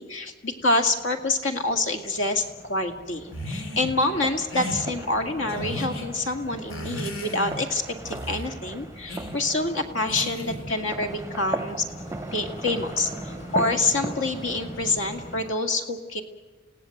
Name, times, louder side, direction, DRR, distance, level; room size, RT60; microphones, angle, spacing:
voice 1, 0.0-11.9 12.3-16.2, left 2 dB, 70° left, 5 dB, 2.2 m, -27 dB
sound 1, 0.6-15.4, equal, 35° left, 5.3 m, -44 dB
sound 2, 2.0-15.5, right 2 dB, 15° right, 0.6 m, -39 dB
sound 3, 3.3-4.0 4.5-4.8 5.5-6.1 6.7-7.7 8.0-8.5 9.1-9.4 10.1-10.7, left 1 dB, 85° left, 3.5 m, -34 dB
30.0 x 17.0 x 7.9 m, 1.4 s
head